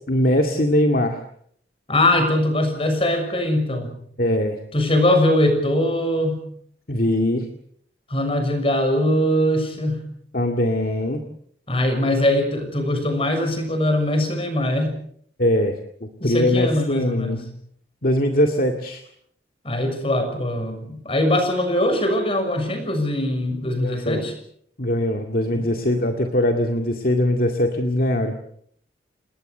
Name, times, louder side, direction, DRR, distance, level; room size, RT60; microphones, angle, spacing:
voice 1, 0.1-1.2 4.2-4.6 6.9-7.5 10.3-11.2 15.4-17.4 18.0-19.0 23.8-24.2 24.8-28.3, left 1 dB, 55° left, 4 dB, 2.1 m, -21 dB
voice 2, 1.9-3.9 4.7-6.4 8.1-10.0 11.7-14.9 16.2-17.5 19.6-24.3 25.5-25.7, left 1 dB, 30° left, 6 dB, 6.4 m, -21 dB
29.5 x 19.5 x 6.7 m, 0.65 s
head